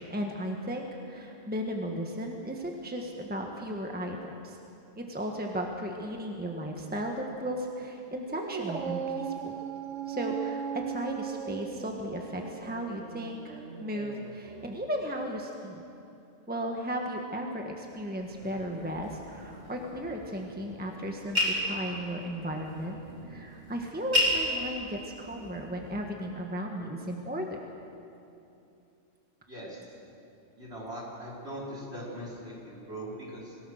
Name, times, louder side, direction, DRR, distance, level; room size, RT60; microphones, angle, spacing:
voice 1, 0.0-4.6 4.9-9.6 10.1-15.8 16.5-23.0 23.3-27.6, equal, 10° right, 1 dB, 1.5 m, -35 dB
Dog, 8.3-14.9, right 8 dB, 75° right, 1.2 m, -38 dB
sound 1, 18.2-26.0, left 1 dB, 35° right, 3.3 m, -34 dB
voice 2, 29.5-29.8 30.5-33.6, right 1 dB, 55° right, -6 dB, 5.6 m, -40 dB
26.0 x 17.5 x 6.5 m, 2.7 s
omnidirectional pair, 1.3 m